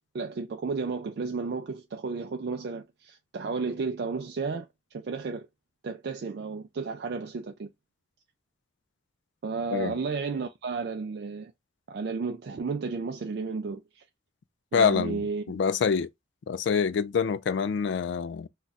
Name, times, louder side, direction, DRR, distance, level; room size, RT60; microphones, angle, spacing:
voice 1, 0.1-5.5 5.8-7.7 9.4-11.5 11.9-14.0 14.7-15.4, right 4 dB, 55° right, 0.3 m, -33 dB
voice 2, 14.7-15.2 15.5-16.1 16.5-18.5, left 6 dB, 65° left, 0.3 m, -26 dB
2.4 x 2.2 x 3.9 m
head